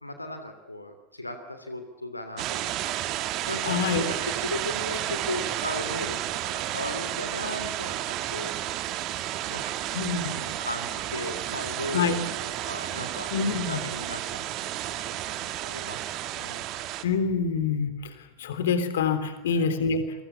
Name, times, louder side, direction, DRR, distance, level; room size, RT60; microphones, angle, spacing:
voice 1, 0.0-3.0 3.5-8.5 9.5-9.6 10.1-12.1 12.3-13.3 13.6-16.0 16.3-16.6 19.5-19.7, left 1 dB, 85° left, 7 dB, 3.0 m, -37 dB
sound 1, 2.4-17.0, right 13 dB, 40° right, 2.1 m, -32 dB
voice 2, 3.7-4.0 9.9-10.4 11.9-12.2 13.3-13.8 17.0-17.9 18.4-20.2, left 5 dB, 60° left, 10 dB, 3.5 m, -26 dB
29.0 x 23.5 x 7.2 m, 0.93 s
figure-of-eight pair, 90°, 0 cm